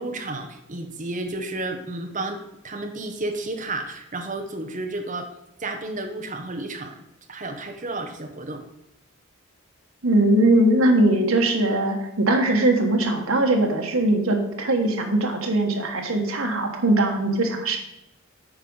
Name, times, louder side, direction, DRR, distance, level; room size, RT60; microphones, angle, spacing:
voice 1, 0.0-5.3 5.6-6.9 7.3-8.6, right 2 dB, 35° right, 5 dB, 1.0 m, -32 dB
voice 2, 10.0-17.8, right 1 dB, 80° right, 3 dB, 1.4 m, -20 dB
8.4 x 4.9 x 5.5 m, 0.87 s
head